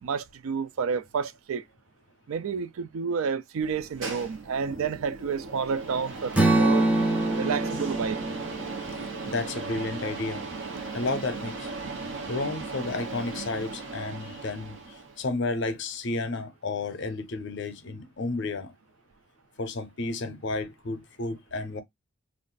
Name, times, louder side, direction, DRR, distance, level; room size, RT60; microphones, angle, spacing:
voice 1, 0.0-1.6 2.3-6.8 7.4-8.2, right 6 dB, 80° right, 0.4 m, -30 dB
sound 1, 3.6-15.2, right 3 dB, 65° right, 0.8 m, -37 dB
Strum, 6.3-10.5, right 2 dB, 5° right, 0.4 m, -26 dB
voice 2, 9.2-10.4 10.9-11.7 12.3-14.8 15.2-18.7 19.6-21.8, left 3 dB, 55° left, 0.6 m, -32 dB
2.5 x 2.4 x 3.7 m
head